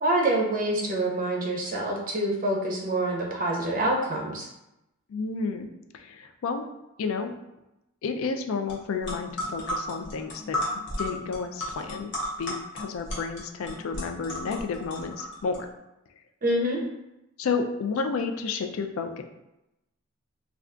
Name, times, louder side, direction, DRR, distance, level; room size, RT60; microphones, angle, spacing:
voice 1, 0.0-4.5 16.4-16.8, right 1 dB, 40° right, 0 dB, 0.5 m, -26 dB
voice 2, 5.1-5.7 5.9-6.7 7.0-7.3 8.0-10.6 11.0-12.1 12.4-15.7 17.4-19.2, left 4 dB, 70° left, 6 dB, 0.3 m, -31 dB
sound 1, 8.7-8.8 9.0-15.6, left 1 dB, 55° left, 0.8 m, -33 dB
2.3 x 2.3 x 3.6 m, 0.91 s
head